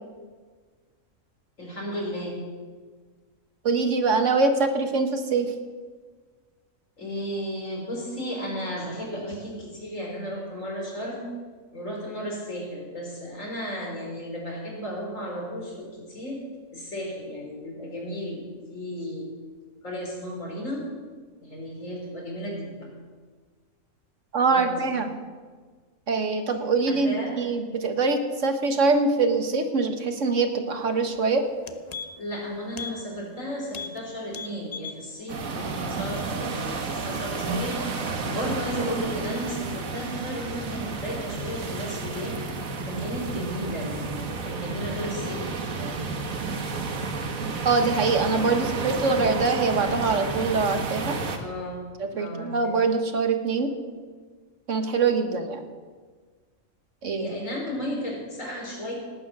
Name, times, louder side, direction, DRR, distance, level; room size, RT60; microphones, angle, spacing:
voice 1, 1.6-2.4 7.0-11.3 11.7-16.4 16.7-18.4 18.7-19.3 19.8-20.9 21.4-22.9 24.5-24.9 26.9-27.4 32.2-42.4 42.9-45.9 51.4-51.9 52.2-52.8 57.1-58.9, equal, 70° left, -2 dB, 4.5 m, -34 dB
voice 2, 3.6-5.5 24.3-25.1 26.1-31.4 47.6-51.2 52.0-53.7 54.7-55.6 57.0-57.3, right 4 dB, 65° right, 6 dB, 1.6 m, -24 dB
sound 1, 31.1-31.2 31.5-32.4 32.7-33.0 33.3-33.4 33.7-34.0 34.3-35.0 35.4-35.5, left 6 dB, 40° left, 0.6 m, -38 dB
sound 2, 35.3-51.4, right 4 dB, 80° right, 1.7 m, -31 dB
18.5 x 9.1 x 6.1 m, 1.5 s
omnidirectional pair, 1.4 m